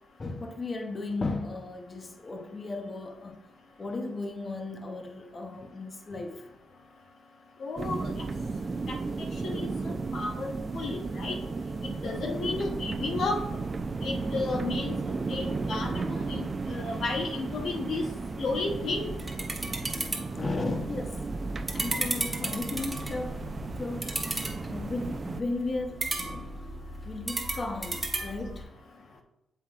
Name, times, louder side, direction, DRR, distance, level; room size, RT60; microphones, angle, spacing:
voice 1, 0.2-3.4 3.8-6.5 9.9-10.1 12.4-12.6 20.2-21.3 21.7-23.5 23.7-24.1 24.7-26.6 27.0-28.7, left 2 dB, 35° left, 0.7 m, -35 dB
voice 2, 7.6-8.1 8.9-9.0 9.4-11.4 11.8-13.4 14.0-18.0 18.4-19.2, left 3 dB, 65° left, 0.8 m, -33 dB
sound 1, 7.8-25.4, right 4 dB, 40° right, 0.4 m, -34 dB
sound 2, 18.6-28.6, right 2 dB, 20° right, 1.1 m, -35 dB
7.3 x 5.6 x 2.4 m
cardioid pair, 65°, 0 cm